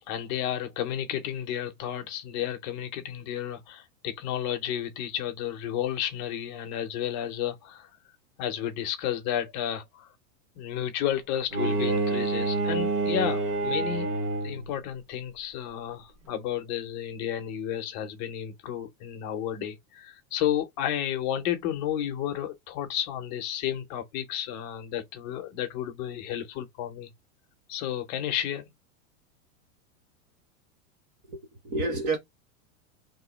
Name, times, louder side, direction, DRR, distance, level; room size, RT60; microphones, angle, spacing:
voice 1, 0.1-7.9 8.4-10.1 10.6-14.1 14.4-27.1 27.7-28.7, left 10 dB, 30° left, 0.6 m, -32 dB
Bowed string instrument, 11.5-14.7, right 2 dB, 40° right, 1.2 m, -27 dB
voice 2, 31.3-32.2, right 3 dB, 25° right, 0.9 m, -29 dB
3.0 x 2.7 x 3.8 m
supercardioid pair, 165°, 44 cm